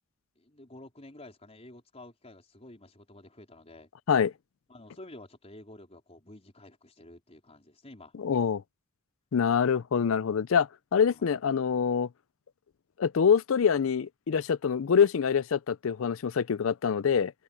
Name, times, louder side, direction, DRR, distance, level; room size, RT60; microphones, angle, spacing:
voice 1, 0.4-3.9 4.7-8.1 9.4-9.6 11.0-11.2, left 1 dB, 30° left, 4.3 m, -50 dB
voice 2, 8.2-8.6 9.3-12.1 13.0-17.3, left 7 dB, 75° left, 0.5 m, -25 dB
open air
head